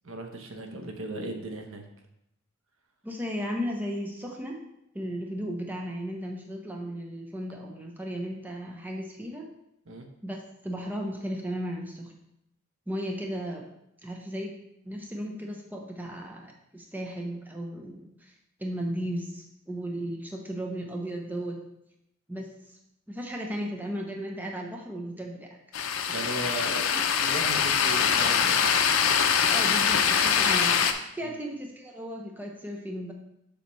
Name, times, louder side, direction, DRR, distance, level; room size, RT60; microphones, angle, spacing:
voice 1, 0.0-1.8 9.9-10.1 26.1-28.6 31.2-31.4, right 1 dB, 70° right, 4 dB, 0.9 m, -37 dB
voice 2, 3.0-4.6 4.9-9.5 10.2-10.4 10.6-12.1 12.9-13.6 14.0-14.5 14.8-18.3 18.6-21.6 22.3-22.8 23.1-25.6 26.9-27.1 29.3-33.1, equal, 10° right, 0 dB, 0.7 m, -35 dB
sound 1, 25.7-30.9, left 7 dB, 75° left, 0.5 m, -23 dB
6.9 x 5.7 x 3.1 m, 0.80 s
head